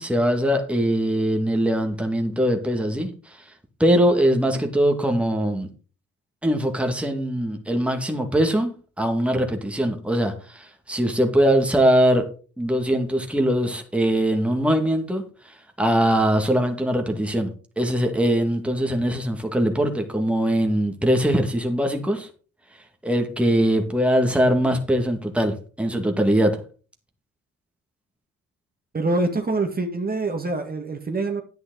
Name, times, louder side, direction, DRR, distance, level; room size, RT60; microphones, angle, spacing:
voice 1, 0.0-3.4 3.8-5.7 6.4-8.7 9.0-12.3 12.6-15.2 15.8-17.5 17.8-22.3 23.0-26.6, equal, 5° right, 3 dB, 2.0 m, -21 dB
voice 2, 28.9-31.4, right 2 dB, 30° right, 4 dB, 1.9 m, -25 dB
9.5 x 9.1 x 3.9 m, 0.38 s
cardioid pair, 90°, 30 cm